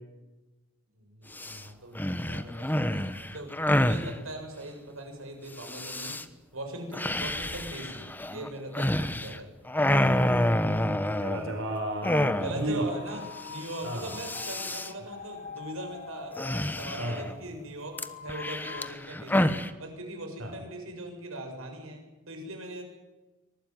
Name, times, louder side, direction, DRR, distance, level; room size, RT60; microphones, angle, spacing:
voice 1, 1.0-6.2 6.5-9.5 12.4-22.8, right 1 dB, 85° right, 4 dB, 7.1 m, -41 dB
sound 1, 1.3-1.6 2.0-4.1 5.6-6.2 6.9-9.4 9.7-11.6 12.0-12.8 13.1-13.2 13.4-13.7 14.0-14.9 16.4-17.3 18.0-19.7, left 1 dB, 10° left, 1.2 m, -28 dB
voice 2, 9.9-12.9 13.8-14.2 17.0-17.3 20.4-20.5, right 1 dB, 65° right, 4 dB, 4.4 m, -34 dB
sound 2, 12.6-18.9, left 6 dB, 45° left, 2.1 m, -44 dB
24.5 x 20.5 x 9.5 m, 1.1 s
head